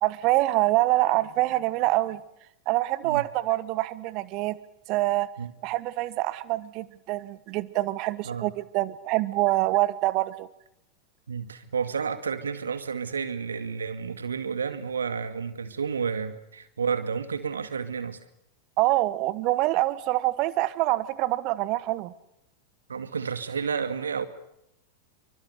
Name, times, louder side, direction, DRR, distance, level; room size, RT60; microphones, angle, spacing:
voice 1, 0.0-2.2 2.7-4.6 4.9-5.3 5.6-10.5 18.8-22.1, right 18 dB, 40° right, 1.2 m, -25 dB
voice 2, 11.3-18.2 22.9-24.3, right 6 dB, 70° right, 2.1 m, -31 dB
28.5 x 24.5 x 6.7 m
figure-of-eight pair, 90°, 0 cm